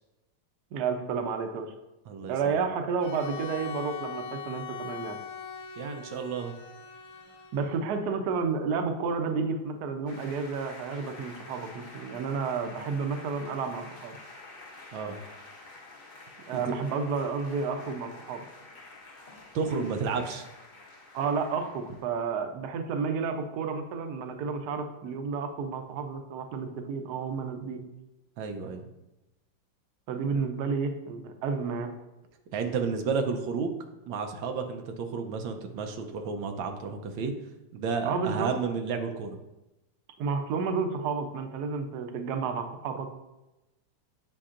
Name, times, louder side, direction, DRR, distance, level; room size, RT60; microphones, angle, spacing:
voice 1, 0.7-1.7 2.3-5.2 7.5-14.2 16.5-18.4 21.1-27.8 30.1-31.9 38.0-38.5 40.2-43.1, right 5 dB, 65° right, 5 dB, 1.1 m, -31 dB
voice 2, 2.1-2.7 5.8-6.5 14.9-15.2 16.5-16.7 19.5-20.5 28.4-28.9 32.5-33.8 34.1-37.3 37.7-39.4, right 5 dB, 90° right, 5 dB, 1.5 m, -32 dB
Bowed string instrument, 3.0-8.0, left 6 dB, 80° left, 1.3 m, -41 dB
sound 1, 10.1-22.2, left 2 dB, 45° left, 0.6 m, -48 dB
8.5 x 5.3 x 2.5 m, 0.98 s
omnidirectional pair, 2.1 m